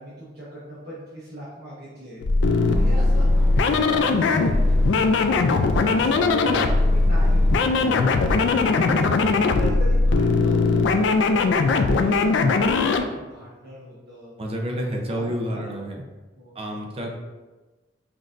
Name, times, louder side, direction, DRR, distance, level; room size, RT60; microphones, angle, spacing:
voice 1, 0.0-2.2 2.7-5.0 5.7-8.9 9.5-14.3 14.8-15.6 16.4-16.5 17.0-17.1, equal, 60° right, -8 dB, 0.9 m, -38 dB
andres ond, 2.2-13.0, left 3 dB, 75° left, 0.3 m, -19 dB
sound 1, 2.6-9.4, left 1 dB, ahead, 1.1 m, -34 dB
voice 2, 14.4-16.0 16.5-17.1, equal, 35° right, 0 dB, 0.6 m, -29 dB
5.9 x 2.6 x 2.5 m, 1.2 s
head